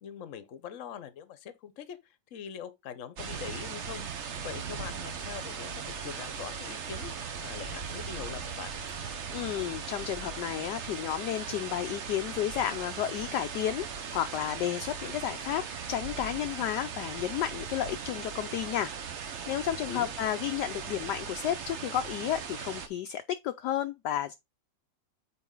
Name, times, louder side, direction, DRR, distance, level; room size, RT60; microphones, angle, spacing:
voice 1, 0.0-4.0 4.4-8.7 19.8-20.1, left 8 dB, 50° left, 1.1 m, -43 dB
rain and thunder, 3.2-22.9, right 6 dB, 50° right, 0.9 m, -38 dB
voice 2, 9.3-18.9 19.5-24.3, left 11 dB, 75° left, 1.1 m, -32 dB
7.0 x 4.6 x 3.7 m
omnidirectional pair, 2.1 m